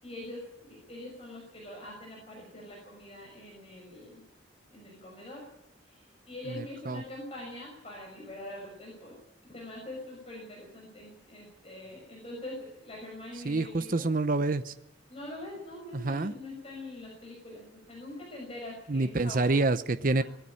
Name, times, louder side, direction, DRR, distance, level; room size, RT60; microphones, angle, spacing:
voice 1, 0.0-4.2 4.7-5.5 5.8-9.2 9.5-14.1 15.1-19.5 20.2-20.3, left 1 dB, 30° left, -1 dB, 5.7 m, -44 dB
voice 2, 6.5-7.0 13.4-14.7 15.9-16.3 18.9-20.2, right 3 dB, 45° right, 11 dB, 0.7 m, -27 dB
20.0 x 14.0 x 9.8 m, 0.88 s
head